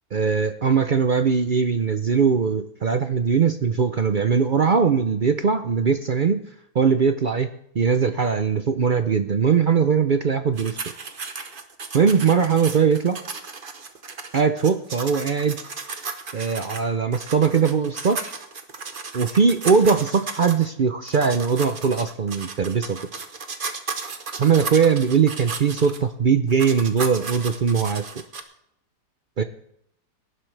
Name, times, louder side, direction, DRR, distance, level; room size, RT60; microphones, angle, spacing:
voice 1, 0.1-6.4 6.7-10.8 11.9-13.2 14.3-15.6 16.3-18.3 19.1-23.0 24.4-28.0 29.4-29.5, right 6 dB, 60° right, 8 dB, 0.5 m, -20 dB
sound 1, 10.6-16.8 17.1-20.7 21.1-26.0 26.5-28.4, right 4 dB, 35° right, 1.1 m, -35 dB
18.0 x 11.0 x 3.3 m, 0.72 s
omnidirectional pair, 1.7 m